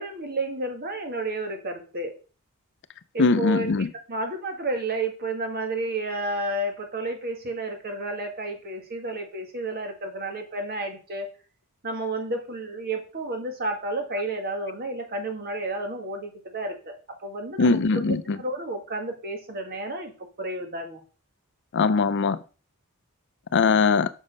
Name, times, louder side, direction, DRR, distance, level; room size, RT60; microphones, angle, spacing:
voice 1, 0.0-2.1 3.1-11.3 11.8-20.1 20.4-21.0, right 2 dB, 45° right, 1.9 m, -31 dB
voice 2, 3.2-3.9 17.6-18.2 21.7-22.4 23.5-24.1, left 4 dB, 55° left, 0.5 m, -20 dB
7.0 x 6.3 x 5.3 m
head